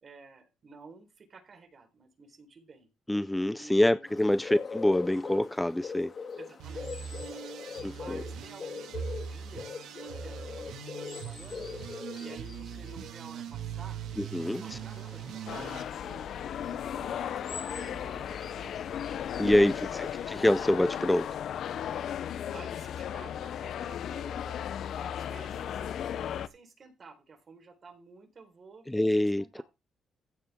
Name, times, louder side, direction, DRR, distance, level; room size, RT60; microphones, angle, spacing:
voice 1, 0.0-2.9 3.5-4.1 6.4-7.4 7.9-11.8 12.2-14.0 14.4-16.4 16.7-18.8 19.4-20.0 22.5-24.7 25.0-29.6, right 4 dB, 40° right, 4.4 m, -52 dB
voice 2, 3.1-6.1 7.8-8.2 14.3-14.8 19.4-21.4 28.9-29.6, left 1 dB, 5° left, 0.5 m, -26 dB
sound 1, 4.1-21.0, left 5 dB, 45° left, 2.0 m, -43 dB
sound 2, 6.6-15.8, right 7 dB, 85° right, 2.0 m, -41 dB
sound 3, 15.5-26.5, left 9 dB, 70° left, 0.7 m, -36 dB
15.0 x 7.2 x 3.7 m
cardioid pair, 110°, 0 cm